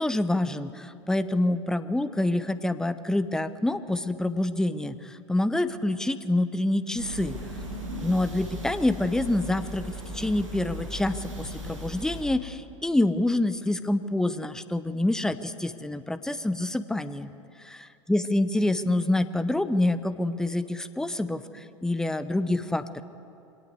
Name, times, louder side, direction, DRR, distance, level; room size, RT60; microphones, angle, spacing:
voice 1, 0.0-7.4 8.0-17.3 17.6-23.0, left 1 dB, 5° left, 13 dB, 0.9 m, -27 dB
sound 1, 7.0-12.2, equal, 75° right, 6.9 m, -37 dB
24.0 x 18.5 x 8.0 m, 2.7 s
figure-of-eight pair, 85°, 17 cm